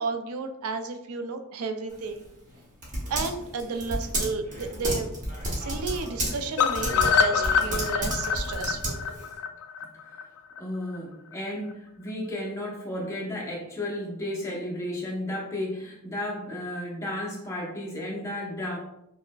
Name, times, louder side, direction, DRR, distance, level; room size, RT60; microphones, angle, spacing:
voice 1, 0.0-2.2 3.1-5.1 5.5-9.0, right 4 dB, 70° right, 7 dB, 0.4 m, -32 dB
Typing, 1.9-9.3, right 1 dB, 35° right, 1.0 m, -32 dB
sound 1, 6.6-10.6 10.9-11.0 11.3-11.4 11.7-11.8, left 6 dB, 75° left, 0.3 m, -26 dB
voice 2, 10.6-18.8, left 1 dB, 15° left, -4 dB, 0.7 m, -33 dB
4.7 x 2.1 x 2.2 m, 0.82 s
head